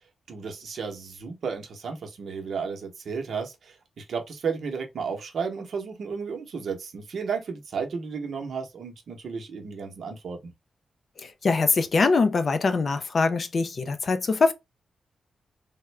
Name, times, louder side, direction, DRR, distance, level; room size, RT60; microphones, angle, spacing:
voice 1, 0.3-10.5, right 5 dB, 60° right, 0.8 m, -33 dB
voice 2, 11.2-14.5, left 4 dB, 40° left, 0.4 m, -23 dB
3.6 x 2.1 x 3.2 m
wide cardioid pair, 170°, 0 cm